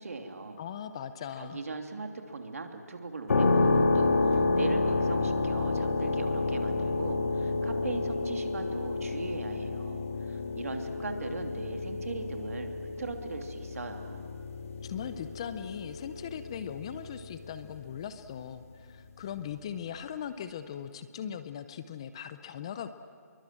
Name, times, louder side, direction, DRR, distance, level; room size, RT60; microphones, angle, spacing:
voice 1, 0.0-0.6 1.4-14.3, right 3 dB, 60° right, 4 dB, 3.0 m, -40 dB
voice 2, 0.6-1.6 14.8-22.9, left 8 dB, 20° left, 11 dB, 0.6 m, -39 dB
sound 1, 3.3-18.0, left 3 dB, 55° left, 2.4 m, -30 dB
27.5 x 23.0 x 7.6 m, 2.4 s
hypercardioid pair, 165°, 9 cm